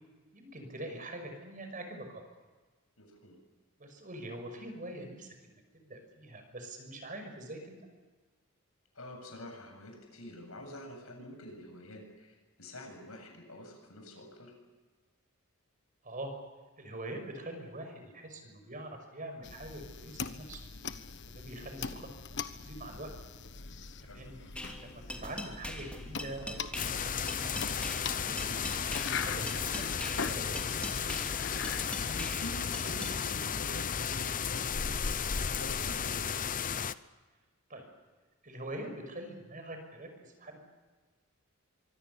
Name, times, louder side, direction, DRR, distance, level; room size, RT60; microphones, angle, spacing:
voice 1, 0.3-2.2 3.8-7.8 16.0-16.4 16.8-20.6 21.3-23.1 24.0-24.4 24.8-27.5 28.0-31.0 37.7-37.9 38.4-40.6, right 1 dB, 40° right, 5 dB, 5.9 m, -44 dB
voice 2, 3.0-3.4 8.9-14.5 24.0-24.2 32.0-35.1 35.5-36.5, left 1 dB, 85° left, 3 dB, 7.8 m, -47 dB
sound 1, 19.4-32.2, left 5 dB, 55° left, 1.3 m, -42 dB
sound 2, 24.6-33.2, left 1 dB, 5° left, 2.9 m, -43 dB
sound 3, 26.7-36.9, left 7 dB, 40° left, 0.8 m, -34 dB
25.0 x 24.5 x 7.0 m, 1.3 s
head